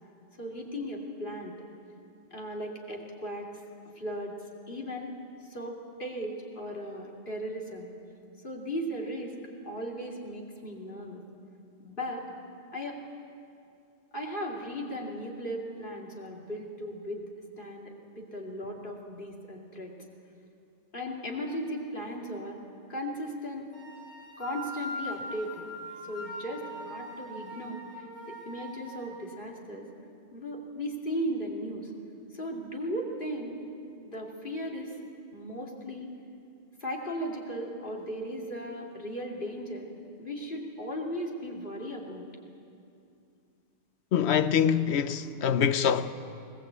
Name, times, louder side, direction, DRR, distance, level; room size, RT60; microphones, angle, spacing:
voice 1, 0.4-1.5 2.3-3.6 4.0-4.3 4.7-5.1 5.4-7.9 8.4-9.4 9.6-11.2 11.8-12.2 12.7-13.0 14.1-17.2 17.6-19.9 20.9-22.6 22.9-23.7 24.4-25.7 26.0-29.9 30.3-31.9 32.3-33.6 34.0-35.0 35.3-36.1 36.8-39.9 40.2-42.3, equal, 45° left, 2.7 m, -37 dB
sound 1, 23.7-29.0, equal, 25° left, 5.4 m, -41 dB
voice 2, 44.1-46.1, left 8 dB, 70° left, 1.0 m, -25 dB
20.5 x 18.5 x 8.2 m
omnidirectional pair, 1.2 m